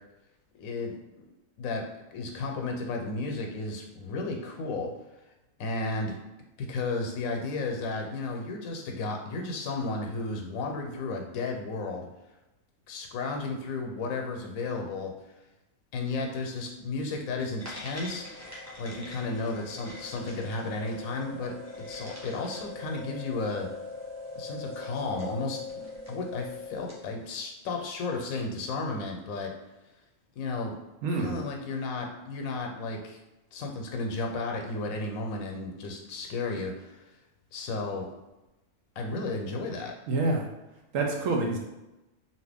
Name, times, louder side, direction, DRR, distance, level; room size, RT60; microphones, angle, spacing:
voice 1, 0.5-1.2 1.6-1.8 2.1-4.9 5.6-6.1 6.6-12.1 12.9-15.1 15.9-18.3 18.8-21.5 21.9-23.7 24.4-25.6 26.1-29.5 30.4-30.8 31.2-33.2 33.5-37.0 37.5-38.1 39.0-39.9, left 3 dB, 85° left, 2 dB, 1.0 m, -33 dB
sound 1, 17.6-27.1, left 3 dB, 15° right, 0.6 m, -41 dB
voice 2, 31.0-31.4 40.1-40.5 40.9-41.6, right 3 dB, 75° right, 1 dB, 1.0 m, -27 dB
2.7 x 2.7 x 3.4 m, 0.99 s
omnidirectional pair, 1.4 m